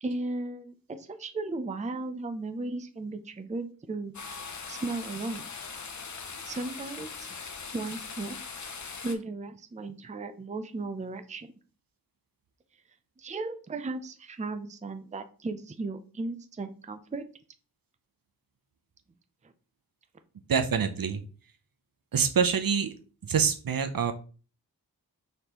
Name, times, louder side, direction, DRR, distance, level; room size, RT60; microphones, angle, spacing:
voice 1, 0.0-5.4 6.5-7.3 7.7-8.5 9.0-11.5 13.2-17.2, right 3 dB, 20° right, 8 dB, 0.5 m, -36 dB
sound 1, 4.1-9.2, left 5 dB, 50° left, 0.6 m, -40 dB
voice 2, 20.5-21.2 22.1-22.9 23.2-24.1, right 6 dB, 65° right, 6 dB, 0.6 m, -26 dB
4.1 x 3.3 x 2.9 m, 0.38 s
wide cardioid pair, 45°, 38 cm